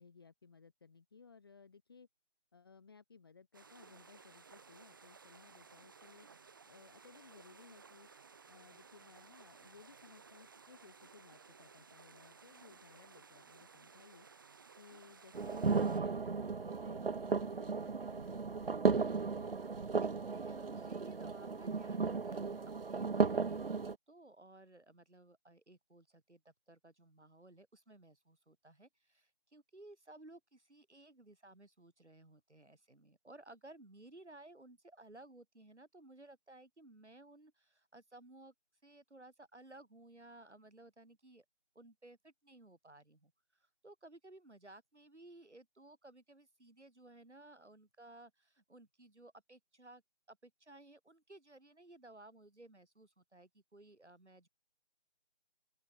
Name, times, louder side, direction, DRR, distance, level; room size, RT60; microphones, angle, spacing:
voice 1, 0.0-2.1 2.5-6.3 6.6-8.1 8.5-14.3 14.7-19.2, left 5 dB, 20° left, 1.5 m, -60 dB
sound 1, 3.5-16.0, right 5 dB, 20° right, 1.6 m, -59 dB
sound 2, 15.3-23.9, right 4 dB, 55° right, 0.6 m, -35 dB
voice 2, 20.0-38.5 38.8-41.4 41.7-50.0 50.3-54.5, right 2 dB, 75° right, 4.6 m, -58 dB
open air
figure-of-eight pair, 160°, 35 cm